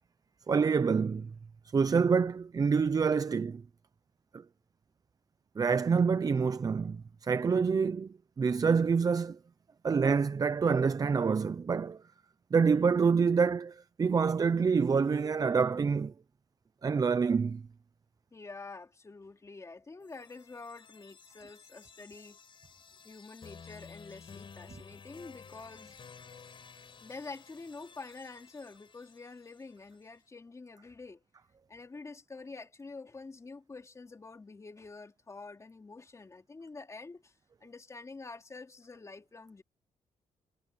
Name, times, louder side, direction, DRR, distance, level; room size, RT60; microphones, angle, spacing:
voice 1, 0.5-1.3 1.7-3.6 5.6-9.4 9.8-12.0 12.5-16.1 16.8-17.6, right 5 dB, 30° right, 0.6 m, -27 dB
voice 2, 18.3-22.4 23.0-26.0 27.0-31.2 31.7-37.3 37.6-39.6, left 3 dB, 25° left, 3.2 m, -47 dB
sound 1, 20.0-29.9, left 6 dB, 40° left, 4.9 m, -53 dB
cardioid pair, 125°, 13 cm